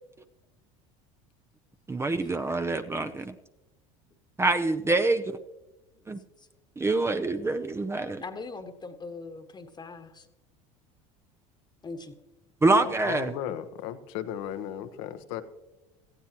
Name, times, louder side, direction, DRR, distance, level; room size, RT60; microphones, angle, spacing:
voice 1, 1.9-3.3 4.4-5.4 6.1-6.2 6.8-8.2 12.6-13.3, right 2 dB, 15° right, 9 dB, 0.6 m, -26 dB
voice 2, 8.2-10.3 11.8-12.2, left 3 dB, 25° left, 8 dB, 1.3 m, -41 dB
voice 3, 12.8-15.4, left 10 dB, 75° left, 10 dB, 1.1 m, -36 dB
18.0 x 14.5 x 2.9 m, 0.98 s
hypercardioid pair, 85°, 17 cm